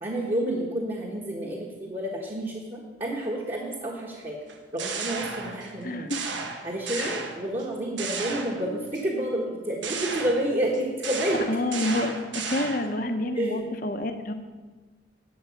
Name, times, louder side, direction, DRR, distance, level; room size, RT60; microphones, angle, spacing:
voice 1, 0.0-4.4 4.7-6.1 6.6-11.5 13.3-13.6, right 1 dB, 30° right, -2 dB, 1.3 m, -29 dB
sound 1, 4.5-5.8 6.1-7.6 8.0-9.0 9.8-13.0, right 5 dB, 85° right, 1.2 m, -34 dB
voice 2, 11.5-14.3, left 1 dB, 45° left, 7 dB, 0.9 m, -28 dB
11.5 x 8.0 x 5.9 m, 1.3 s
head